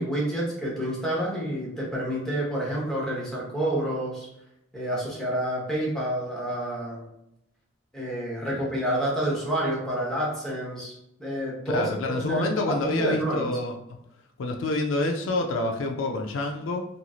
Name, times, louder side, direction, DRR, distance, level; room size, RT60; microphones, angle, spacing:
voice 1, 0.0-4.3 4.7-7.1 7.9-13.5, right 1 dB, 5° left, -5 dB, 0.9 m, -29 dB
voice 2, 11.7-13.7 14.4-16.8, left 2 dB, 75° left, 3 dB, 0.4 m, -27 dB
3.0 x 2.6 x 2.3 m, 0.81 s
head